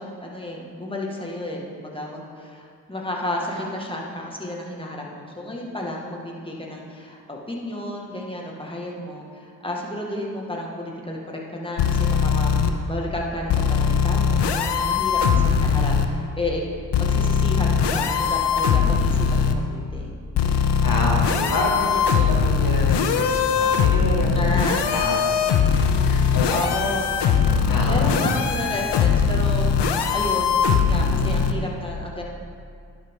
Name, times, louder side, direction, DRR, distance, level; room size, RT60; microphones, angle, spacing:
voice 1, 0.0-16.6 17.0-20.2 24.3-24.9 26.5-27.2 27.5-32.2, left 1 dB, 10° left, -2 dB, 2.0 m, -32 dB
sound 1, 11.8-12.7 13.5-16.1 16.9-19.6 20.4-31.5, left 6 dB, 70° left, 0.7 m, -20 dB
voice 2, 20.8-25.3 26.0-26.6 27.7-28.3, left 1 dB, 50° left, -2 dB, 2.1 m, -28 dB
11.0 x 6.3 x 3.8 m, 2.2 s
supercardioid pair, 40°, 43 cm